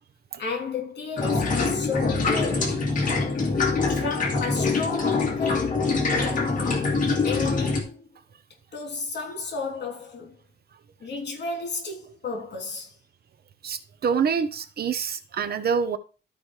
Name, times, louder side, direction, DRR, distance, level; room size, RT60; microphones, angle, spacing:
voice 1, 0.4-2.8 3.9-5.9 7.2-8.0 8.7-10.4 11.0-12.9, left 4 dB, 70° left, 3.2 m, -32 dB
sound 1, 1.2-7.8, left 4 dB, 50° left, 2.2 m, -24 dB
voice 2, 13.6-16.0, right 6 dB, 60° right, 0.8 m, -26 dB
13.5 x 4.9 x 3.2 m
wide cardioid pair, 165°, 18 cm